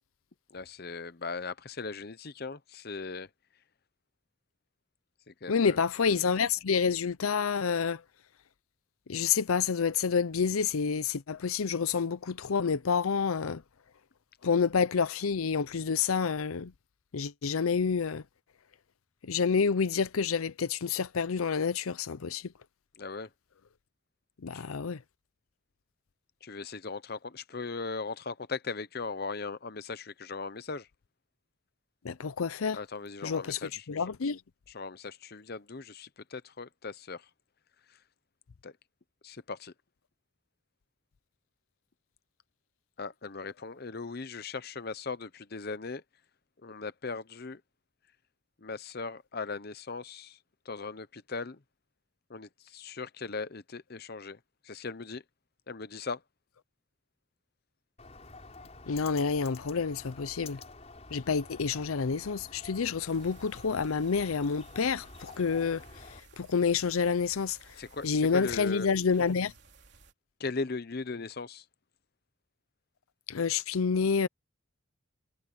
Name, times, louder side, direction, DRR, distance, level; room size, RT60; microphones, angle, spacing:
voice 1, 0.5-3.3 5.3-5.8 23.0-23.3 24.5-24.6 26.4-30.9 32.7-33.8 34.7-37.3 38.6-38.7 39.2-39.7 43.0-46.0 46.6-47.6 48.6-50.4 50.6-51.6 52.3-55.2 55.7-56.2 67.8-68.9 70.4-71.6, left 4 dB, 45° left, 0.8 m, -38 dB
voice 2, 5.5-8.0 9.1-13.6 14.4-16.7 17.1-18.2 19.2-22.5 24.4-25.0 32.0-32.8 33.2-34.4 58.9-60.6 61.1-69.5 73.3-74.3, left 5 dB, 90° left, 0.6 m, -28 dB
Bird, 58.0-66.2, left 3 dB, 30° left, 5.0 m, -49 dB
sound 1, 63.1-70.1, right 3 dB, 55° right, 3.7 m, -57 dB
head